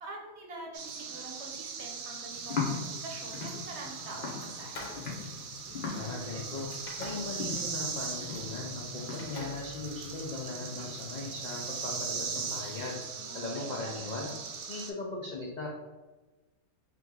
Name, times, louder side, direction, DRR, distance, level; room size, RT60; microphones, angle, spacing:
voice 1, 0.0-4.9 13.2-14.4, right 2 dB, 55° right, 0 dB, 1.0 m, -45 dB
sound 1, 0.7-14.9, right 5 dB, 80° right, 1.0 m, -40 dB
sound 2, 2.3-13.0, left 5 dB, 45° left, 0.9 m, -41 dB
sound 3, 4.6-6.3 6.8-7.7 8.0-8.4 8.7-10.3, left 3 dB, 80° left, 1.3 m, -47 dB
voice 2, 5.9-6.7 7.0-13.0 13.3-14.3 14.7-15.7, left 3 dB, 65° left, -2 dB, 0.4 m, -39 dB
3.9 x 3.0 x 3.6 m, 1.2 s
omnidirectional pair, 1.5 m